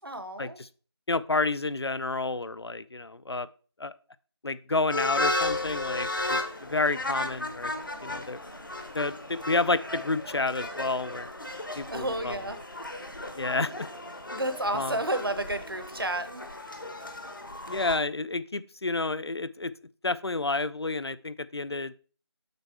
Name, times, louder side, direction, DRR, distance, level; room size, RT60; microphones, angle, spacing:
voice 1, 0.0-0.6 11.9-12.6 14.3-16.5, right 1 dB, 55° right, 10 dB, 1.0 m, -31 dB
voice 2, 1.1-3.5 3.8-3.9 4.4-7.7 8.0-8.4 8.9-11.3 11.8-12.4 13.4-13.9 14.7-15.0 17.7-19.7 20.0-21.9, left 3 dB, 65° left, 16 dB, 0.5 m, -30 dB
sound 1, 4.9-18.0, left 2 dB, 50° left, 0.9 m, -35 dB
7.9 x 5.4 x 3.4 m, 0.38 s
figure-of-eight pair, 175°, 14 cm